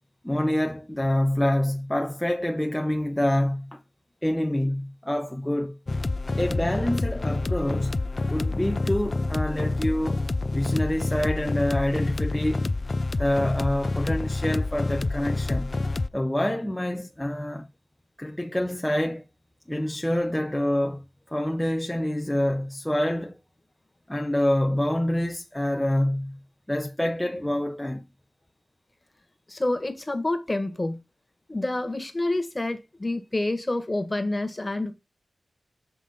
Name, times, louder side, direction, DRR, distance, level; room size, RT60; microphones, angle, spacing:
voice 1, 0.2-3.8 4.2-5.8 6.4-7.9 8.3-10.2 10.5-12.7 13.1-15.7 16.1-17.7 18.2-19.2 19.7-23.3 24.1-26.4 26.7-28.0, left 1 dB, 10° left, 0.8 m, -26 dB
sound 1, 5.9-16.1, left 2 dB, 45° left, 0.5 m, -27 dB
voice 2, 29.5-31.0 31.5-34.9, left 2 dB, 25° left, 1.6 m, -28 dB
7.3 x 3.6 x 5.0 m
cardioid pair, 55°, 0 cm